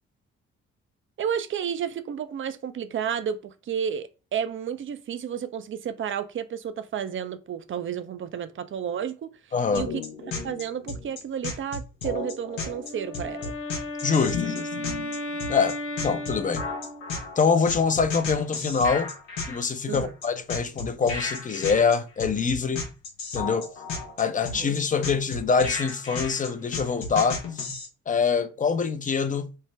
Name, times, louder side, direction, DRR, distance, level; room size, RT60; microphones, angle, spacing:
voice 1, 1.2-9.3 9.7-9.9 10.4-13.5 19.9-20.1 24.4-24.7, right 8 dB, 40° right, 0.5 m, -31 dB
voice 2, 9.5-9.9 14.0-14.7 15.5-15.8 16.0-16.7 17.4-19.1 19.5-22.9 23.3-23.7 24.2-27.7 28.1-29.5, left 5 dB, 25° left, 0.6 m, -24 dB
sound 1, 9.7-27.9, left 4 dB, 80° left, 0.9 m, -33 dB
Wind instrument woodwind instrument, 12.7-17.2, left 1 dB, 40° left, 1.1 m, -35 dB
3.3 x 2.1 x 3.1 m
hypercardioid pair, 45°, 33 cm